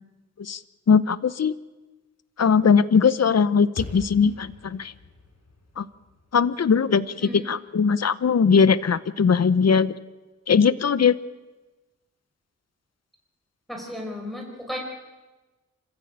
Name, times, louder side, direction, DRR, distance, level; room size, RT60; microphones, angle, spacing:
voice 1, 0.9-1.5 2.4-4.9 5.8-5.9 6.3-9.9 10.5-11.2, left 6 dB, 60° left, 16 dB, 0.8 m, -20 dB
sound 1, 3.8-8.0, left 4 dB, 80° left, 6.3 m, -42 dB
voice 2, 13.7-14.8, left 1 dB, ahead, 0 dB, 5.1 m, -34 dB
26.5 x 15.0 x 8.8 m, 1.2 s
cardioid pair, 60°, 30 cm